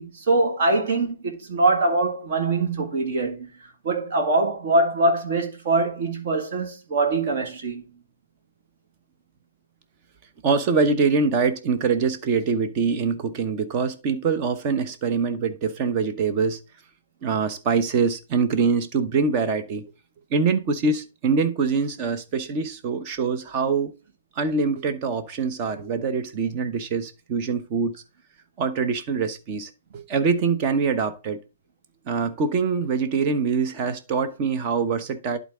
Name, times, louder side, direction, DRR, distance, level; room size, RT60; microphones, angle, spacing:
voice 1, 0.0-3.5 3.8-7.8, right 2 dB, 45° right, 2.1 m, -23 dB
voice 2, 10.4-16.6 17.2-19.9 20.3-23.9 24.4-28.0 28.6-31.4 32.1-35.4, right 5 dB, 30° right, 1.0 m, -24 dB
11.5 x 4.0 x 3.7 m
figure-of-eight pair, 125°, 0 cm